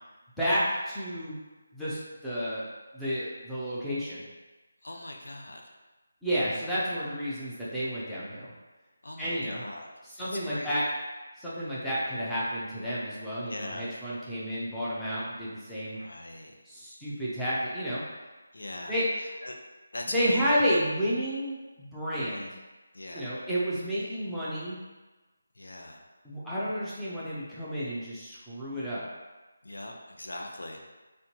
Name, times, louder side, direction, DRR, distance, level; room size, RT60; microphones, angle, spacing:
voice 1, 0.4-1.3 1.7-2.6 2.9-4.2 6.2-8.5 9.2-9.6 10.2-10.8 11.4-16.0 16.6-18.0 18.9-19.1 20.1-22.5 23.1-24.8 26.2-29.0, equal, ahead, -11 dB, 0.5 m, -31 dB
voice 2, 4.8-5.8 9.0-9.9 10.2-10.8 13.4-13.9 16.0-16.5 18.5-19.6 19.9-20.9 22.3-22.5 22.9-23.3 25.5-26.0 29.6-30.8, left 1 dB, 85° left, 2 dB, 0.8 m, -41 dB
4.3 x 3.6 x 2.9 m, 1.2 s
figure-of-eight pair, 180°, 0 cm